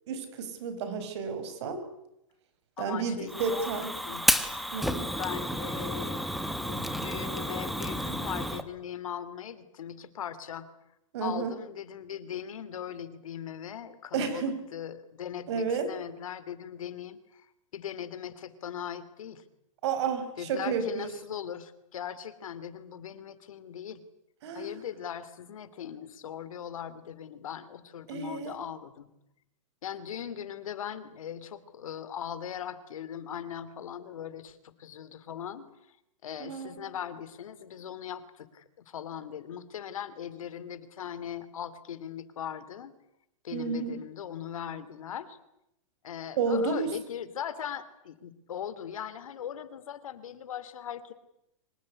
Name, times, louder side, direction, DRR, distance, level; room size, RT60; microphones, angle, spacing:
voice 1, 0.1-1.8 2.8-3.9 4.7-5.1 11.1-11.6 14.1-14.6 15.5-15.9 19.8-21.1 24.4-24.7 28.1-28.6 36.4-36.9 43.5-44.0 46.4-46.9, right 5 dB, 55° right, 9 dB, 5.3 m, -31 dB
voice 2, 2.8-3.7 4.0-4.2 5.2-10.7 11.2-17.2 17.7-19.4 20.4-24.0 24.5-29.1 29.8-35.7 36.2-42.9 43.4-45.4 46.0-51.1, left 9 dB, 80° left, 13 dB, 3.0 m, -39 dB
Fire, 3.3-8.6, equal, ahead, 1.3 m, -31 dB
25.0 x 18.5 x 9.9 m, 0.83 s
supercardioid pair, 160°, 17 cm